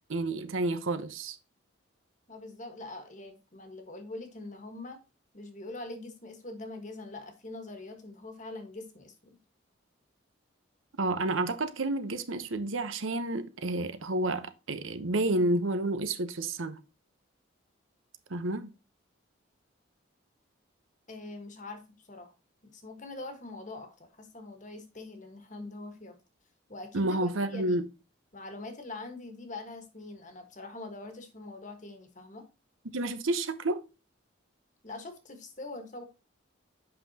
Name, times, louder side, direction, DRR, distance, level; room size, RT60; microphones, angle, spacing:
voice 1, 0.1-1.4 11.0-16.8 18.3-18.7 26.9-27.8 32.9-33.8, right 2 dB, 80° right, 0.9 m, -30 dB
voice 2, 2.3-5.0 5.3-9.4 21.1-21.8 22.1-22.3 22.6-26.1 26.7-27.8 28.3-32.5 34.8-36.0, left 2 dB, 40° left, 1.4 m, -43 dB
7.8 x 5.7 x 2.8 m
head